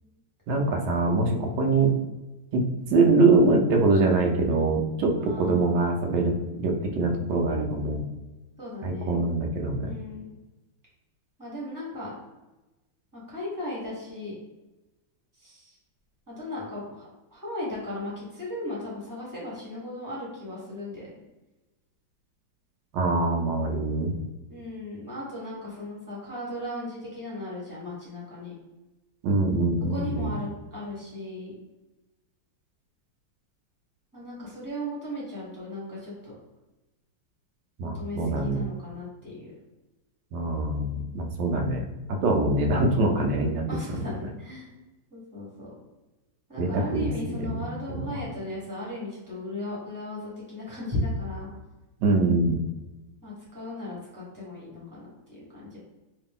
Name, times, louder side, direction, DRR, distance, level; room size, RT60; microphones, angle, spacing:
voice 1, 0.5-1.9 2.5-2.6 2.9-8.0 8.8-9.9 22.9-24.2 29.2-30.3 37.8-38.6 40.3-43.6 46.6-48.0 52.0-52.6, right 3 dB, 75° right, 2 dB, 1.2 m, -24 dB
voice 2, 5.1-5.8 8.6-9.1 9.8-10.3 11.4-12.1 13.1-14.3 15.4-15.7 16.3-21.1 24.5-28.5 29.9-31.5 34.1-36.3 37.8-39.5 43.7-44.7 45.1-45.7 46.5-51.5 53.2-55.8, left 1 dB, 10° right, -7 dB, 1.2 m, -36 dB
3.2 x 2.8 x 3.6 m, 1.1 s
omnidirectional pair, 2.1 m